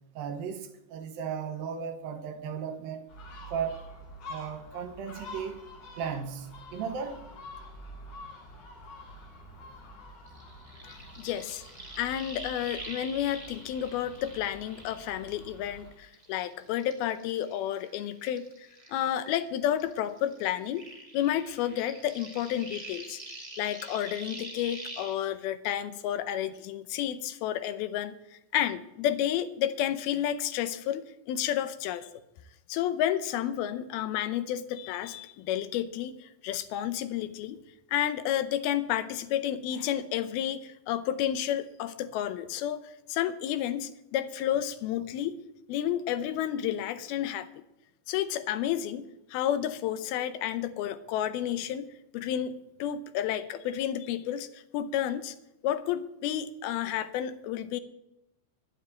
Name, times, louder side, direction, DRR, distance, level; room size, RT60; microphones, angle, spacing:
voice 1, 0.2-3.1 3.5-3.8 4.3-5.6 6.0-7.2, right 7 dB, 75° right, 8 dB, 2.7 m, -35 dB
Gull seagull, 3.1-15.9, left 1 dB, 45° left, 3.0 m, -47 dB
sound 1, 10.3-15.8 16.1-19.5 19.7-25.1, right 1 dB, 10° right, 1.7 m, -45 dB
voice 2, 10.8-11.6 12.0-20.8 21.1-23.2 23.6-28.2 28.5-32.1 32.7-37.6 37.9-42.8 43.1-45.4 45.7-47.5 48.1-49.0 49.3-51.9 52.1-55.4 55.6-57.8, left 11 dB, 80° left, 12 dB, 2.6 m, -31 dB
11.5 x 7.3 x 8.6 m, 0.87 s
omnidirectional pair, 4.4 m